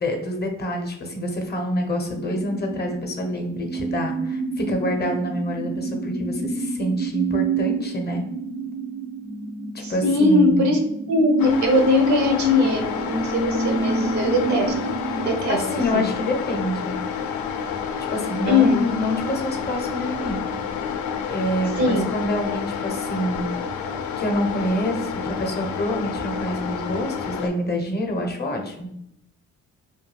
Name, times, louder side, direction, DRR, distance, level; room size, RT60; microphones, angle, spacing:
voice 1, 0.0-8.2 9.7-10.7 15.5-17.0 18.1-20.5 21.3-23.5 24.2-28.9, left 1 dB, 35° left, 3 dB, 0.6 m, -27 dB
sound 1, 2.1-15.3, right 4 dB, 30° right, 0.4 m, -29 dB
voice 2, 9.8-10.8 11.1-14.7 15.2-15.6 15.9-16.1 18.5-18.8 21.8-22.1, left 2 dB, 65° right, 3 dB, 0.7 m, -20 dB
sound 2, 11.4-27.5, left 6 dB, 75° left, 0.4 m, -29 dB
2.3 x 2.2 x 3.2 m, 0.81 s
cardioid pair, 90°, 30 cm